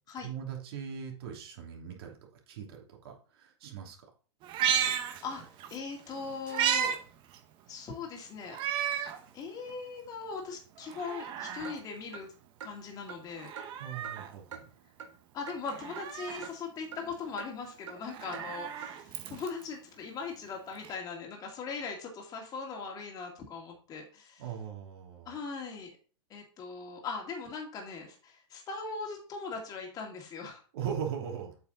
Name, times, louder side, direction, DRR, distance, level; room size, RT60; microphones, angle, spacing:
voice 1, 0.2-2.1 2.5-4.0 13.8-14.7 24.4-25.4 30.7-31.5, right 8 dB, 55° right, 0 dB, 2.8 m, -39 dB
Meow, 4.4-5.8 6.1-7.0 7.3-7.4 8.5-9.2 9.7-9.8 10.8-11.8 13.3-14.3 15.7-16.5 18.0-19.6 20.8-20.9, right 9 dB, 30° right, 1.1 m, -33 dB
voice 2, 4.8-5.4 5.7-7.0 7.7-8.6 8.9-12.3 12.6-13.5 15.3-24.4 25.3-25.9 26.3-30.6, left 4 dB, 25° left, 1 dB, 2.2 m, -40 dB
Clock, 11.6-11.8 12.1-12.2 12.6-12.7 13.1-13.2 13.6-13.7 14.0-14.2 14.5-14.6 15.0-15.1 15.5-15.6 16.0-16.1 16.4-16.5 16.9-17.0 17.4-17.5 17.9-18.0 18.3-18.5 18.8-18.9, right 6 dB, 85° right, 1.5 m, -43 dB
8.1 x 5.5 x 3.9 m, 0.38 s
hypercardioid pair, 135°, 15 cm